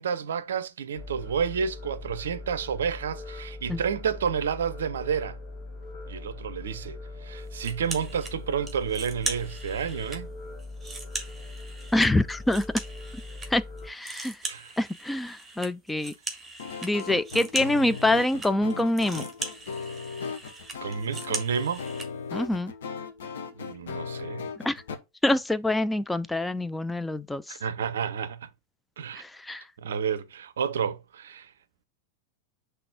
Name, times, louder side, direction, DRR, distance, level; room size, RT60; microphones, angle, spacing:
voice 1, 0.0-5.4 6.1-10.3 14.4-14.7 20.8-21.8 23.6-24.5 27.5-28.5 29.0-29.2 29.8-31.5, right 7 dB, 65° right, 0.5 m, -30 dB
sound 1, 0.9-13.9, left 2 dB, 45° left, 1.2 m, -41 dB
sound 2, 7.6-8.3 8.7-10.2 10.6-13.5 13.8-22.1, right 3 dB, 10° right, 1.6 m, -39 dB
voice 2, 11.9-12.7 13.5-14.4 14.8-16.1 16.8-19.2 22.3-22.7 24.6-24.8 25.2-27.6 29.2-29.6, left 1 dB, 5° left, 0.4 m, -26 dB
sound 3, 16.6-25.0, left 5 dB, 60° left, 0.9 m, -37 dB
5.8 x 3.3 x 4.8 m
figure-of-eight pair, 90°, 0 cm